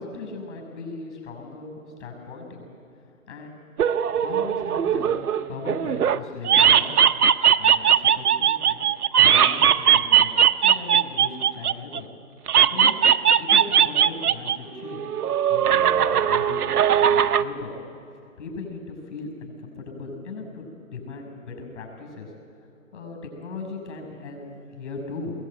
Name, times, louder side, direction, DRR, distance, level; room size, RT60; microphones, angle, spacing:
voice 1, 0.0-2.6 3.3-3.6 4.2-5.2 5.5-7.0 7.6-8.8 9.2-10.3 10.6-12.1 12.6-15.1 15.5-16.7 17.1-17.7 18.4-22.3 22.9-25.3, left 3 dB, 50° left, 3 dB, 6.4 m, -38 dB
sound 1, 3.8-6.2 6.4-12.0 12.5-14.6 14.8-17.4, right 9 dB, 85° right, 0.9 m, -19 dB
21.5 x 18.0 x 9.0 m, 2.5 s
hypercardioid pair, 160°, 44 cm